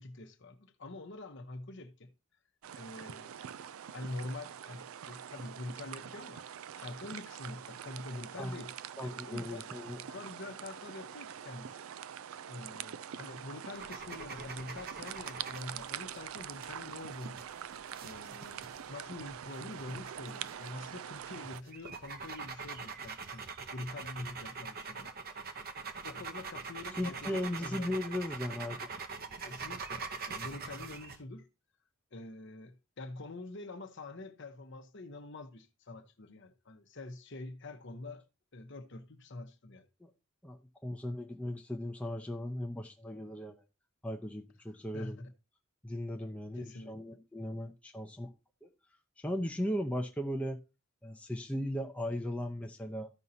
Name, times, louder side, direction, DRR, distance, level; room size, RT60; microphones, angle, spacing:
voice 1, 0.0-2.1 2.8-3.4 3.9-6.5 6.8-8.7 9.0-9.7 10.0-11.9 12.5-17.4 18.0-25.4 26.0-27.9 29.4-31.5 32.1-38.2 38.5-39.9 44.9-45.3 46.6-46.9, left 2 dB, 55° left, 0.9 m, -45 dB
sound 1, 2.6-21.6, right 9 dB, 75° right, 0.4 m, -45 dB
voice 2, 9.0-10.0 27.0-28.9 40.0-40.1 40.4-43.6 44.0-45.2 45.8-48.3 48.6-48.7 49.2-50.6 51.0-53.1, left 1 dB, 5° left, 0.7 m, -37 dB
sound 2, 13.7-31.2, right 5 dB, 45° right, 0.8 m, -44 dB
14.0 x 5.4 x 2.7 m
head